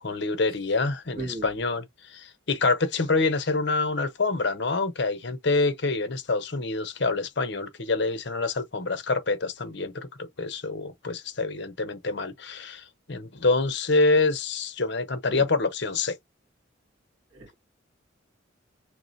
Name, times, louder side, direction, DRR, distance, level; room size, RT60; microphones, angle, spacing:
voice 1, 0.0-16.2, left 3 dB, 55° left, 0.9 m, -26 dB
voice 2, 1.2-1.5 15.3-15.5 17.3-17.5, right 2 dB, 70° right, 1.8 m, -35 dB
4.7 x 3.2 x 2.6 m
head